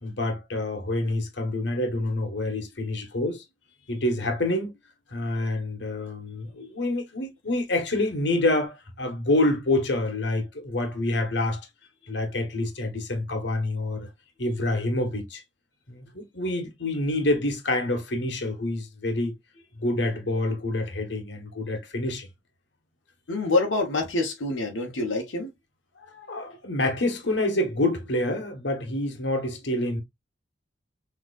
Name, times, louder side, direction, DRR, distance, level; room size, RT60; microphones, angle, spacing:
voice 1, 0.0-3.4 3.9-4.7 5.1-11.7 12.1-14.1 14.4-15.4 15.9-19.3 19.8-22.3 26.0-30.0, left 1 dB, 65° left, 1.3 m, -27 dB
voice 2, 23.3-25.5 26.5-26.6, left 2 dB, 80° left, 1.1 m, -26 dB
6.2 x 3.1 x 2.5 m
head